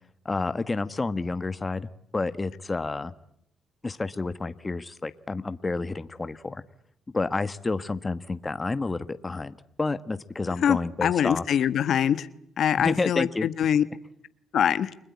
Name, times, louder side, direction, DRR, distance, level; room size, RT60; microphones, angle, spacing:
voice 1, 0.2-3.1 3.8-6.6 7.1-11.4 12.8-13.5, left 3 dB, 25° left, 12 dB, 1.3 m, -30 dB
voice 2, 10.6-12.3 12.6-13.8 14.5-14.9, left 9 dB, 65° left, 13 dB, 1.3 m, -23 dB
30.0 x 21.0 x 9.6 m, 0.76 s
cardioid pair, 90°, 0 cm